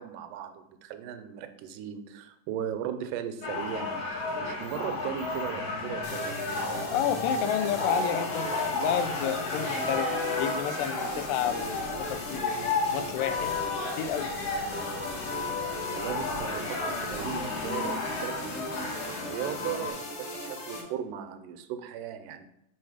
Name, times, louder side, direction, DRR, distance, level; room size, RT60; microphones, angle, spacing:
voice 1, 0.0-6.5 15.9-22.5, right 9 dB, 80° right, 8 dB, 2.0 m, -37 dB
sound 1, 3.4-19.9, left 3 dB, 65° left, 2.8 m, -32 dB
sound 2, 6.0-20.8, left 1 dB, 50° left, 2.3 m, -38 dB
voice 2, 6.9-10.1 10.4-12.5 12.9-13.5 14.0-14.3, left 10 dB, 85° left, 11 dB, 2.2 m, -30 dB
6.1 x 4.1 x 4.8 m, 0.80 s
omnidirectional pair, 3.8 m